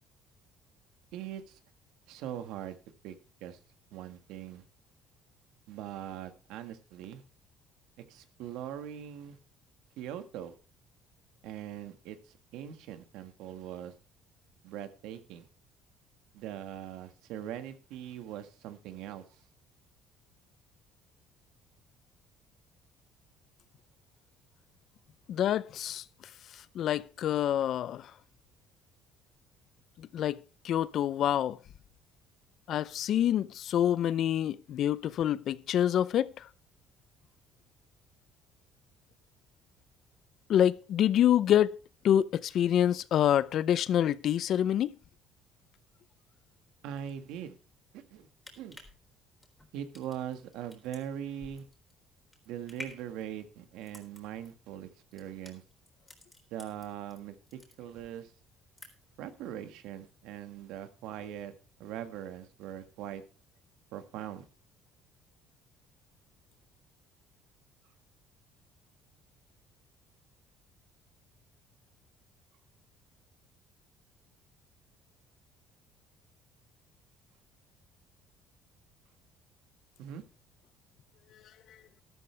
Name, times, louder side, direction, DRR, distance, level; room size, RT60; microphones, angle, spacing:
voice 1, 1.1-1.6 2.1-2.8 3.0-3.1 3.4-3.6 3.9-4.6 5.7-7.2 8.1-9.4 10.0-10.5 11.4-12.2 12.5-13.9 14.6-15.5 16.3-19.2 46.8-47.6 47.9-48.3 48.6-48.8 49.7-51.6 52.4-55.6 56.5-58.3 59.2-61.5 61.8-63.2 63.9-64.5 80.0-80.2, right 10 dB, 80° right, 1.6 m, -41 dB
voice 2, 25.3-26.0 26.7-28.1 30.0-31.6 32.7-36.5 40.5-41.7 42.0-44.9, left 10 dB, 55° left, 0.6 m, -27 dB
sound 1, 48.3-57.2 57.5-58.2 58.5-59.2 59.6-59.7, left 2 dB, 10° left, 3.8 m, -51 dB
13.0 x 12.5 x 3.4 m
cardioid pair, 115°, 0 cm